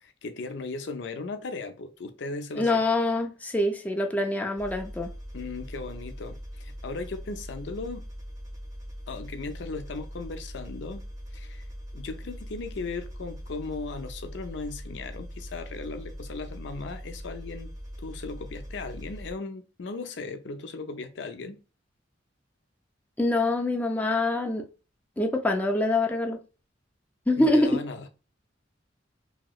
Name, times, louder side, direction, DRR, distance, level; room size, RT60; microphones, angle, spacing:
voice 1, 0.0-2.8 5.3-8.1 9.1-11.0 11.3-11.6 11.9-17.7 18.0-21.6 27.4-28.1, left 3 dB, 65° left, 0.5 m, -37 dB
voice 2, 2.6-5.1 23.2-24.7 25.2-26.4 27.3-27.8, left 2 dB, 10° left, 0.4 m, -25 dB
sound 1, 4.6-19.3, equal, 20° right, 0.8 m, -41 dB
2.9 x 2.9 x 2.3 m
head